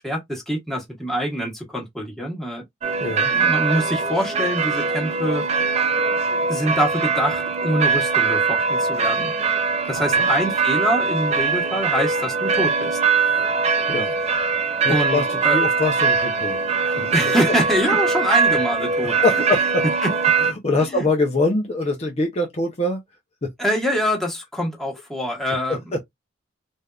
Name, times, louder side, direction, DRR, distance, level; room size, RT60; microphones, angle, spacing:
voice 1, 0.0-2.6 3.3-5.4 6.5-9.3 9.9-13.5 14.9-15.6 17.1-19.4 20.0-20.1 20.7-21.1 23.6-25.8, equal, ahead, 1.2 m, -25 dB
sound 1, 2.8-20.5, right 5 dB, 35° right, 0.4 m, -21 dB
voice 2, 3.0-3.3 10.2-10.3 13.9-14.2 14.8-15.2 15.5-16.6 16.8-17.1 19.2-19.6 20.4-23.0 23.4-23.5, left 2 dB, 35° left, 0.7 m, -23 dB
3.4 x 2.6 x 2.3 m
head